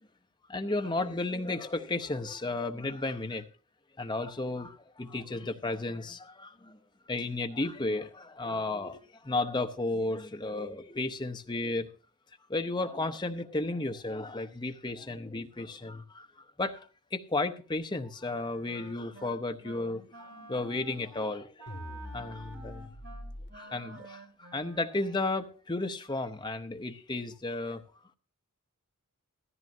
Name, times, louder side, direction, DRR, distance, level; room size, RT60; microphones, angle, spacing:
voice 1, 0.5-3.4 4.0-6.8 7.1-11.9 12.5-16.3 16.6-21.7 22.1-22.9 23.5-27.8, left 2 dB, 20° left, 0.7 m, -33 dB
Wind instrument woodwind instrument, 18.2-19.3 19.6-19.9 20.1-25.4, right 2 dB, 60° right, 2.4 m, -50 dB
sound 1, 21.7-23.5, left 1 dB, 50° left, 1.8 m, -43 dB
14.5 x 14.0 x 2.7 m
head